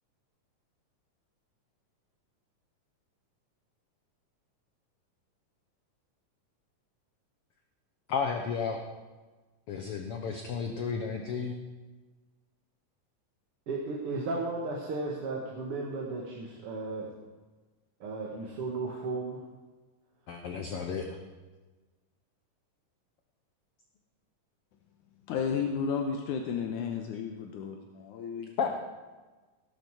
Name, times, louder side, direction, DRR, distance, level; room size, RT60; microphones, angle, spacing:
voice 1, 8.1-8.8 9.7-11.6 20.3-21.0 28.6-28.8, left 6 dB, 60° left, 4 dB, 1.6 m, -32 dB
voice 2, 13.7-17.1 18.0-19.4, right 3 dB, 50° right, -2 dB, 2.4 m, -34 dB
voice 3, 25.3-28.6, left 6 dB, 80° left, 3 dB, 2.4 m, -33 dB
18.0 x 12.0 x 4.8 m, 1.2 s
omnidirectional pair, 3.7 m